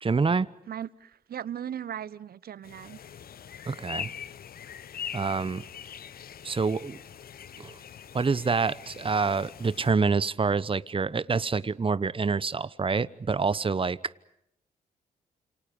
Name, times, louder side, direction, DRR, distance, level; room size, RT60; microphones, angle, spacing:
voice 1, 0.0-0.5 3.6-4.1 5.1-5.6 6.4-7.0 7.6-7.8 8.1-14.0, right 4 dB, 30° right, 1.0 m, -27 dB
voice 2, 0.7-3.0, right 9 dB, 60° right, 0.9 m, -37 dB
sound 1, 2.6-9.9, left 8 dB, 60° left, 0.9 m, -42 dB
30.0 x 28.0 x 5.4 m
hypercardioid pair, 45°, 18 cm